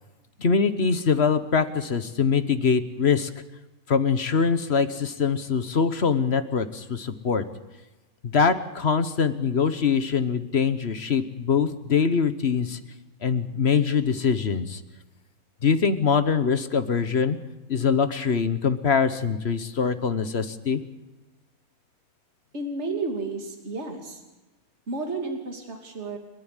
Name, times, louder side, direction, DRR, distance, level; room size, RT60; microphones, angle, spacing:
voice 1, 0.4-3.3 3.9-7.4 8.2-12.8 13.2-14.8 15.6-17.4 17.7-20.8, left 6 dB, 45° left, 11 dB, 1.3 m, -23 dB
voice 2, 22.5-24.2 24.9-26.2, right 3 dB, 45° right, 3 dB, 3.0 m, -32 dB
30.0 x 11.0 x 9.9 m, 1.1 s
omnidirectional pair, 1.6 m